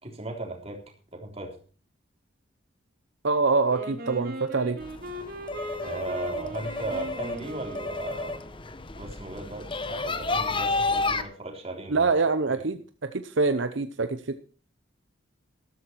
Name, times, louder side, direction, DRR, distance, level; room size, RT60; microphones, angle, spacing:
voice 1, 0.0-0.8 1.2-1.5 5.8-8.4 9.0-12.1, right 2 dB, 30° right, 2 dB, 3.5 m, -37 dB
voice 2, 3.2-4.8 11.9-14.3, right 4 dB, 70° right, 10 dB, 0.8 m, -25 dB
Wind instrument woodwind instrument, 3.7-8.7, right 1 dB, 50° right, 2.8 m, -39 dB
sound 1, 4.8-11.2, left 3 dB, 25° left, 0.9 m, -31 dB
13.0 x 13.0 x 4.6 m, 0.40 s
head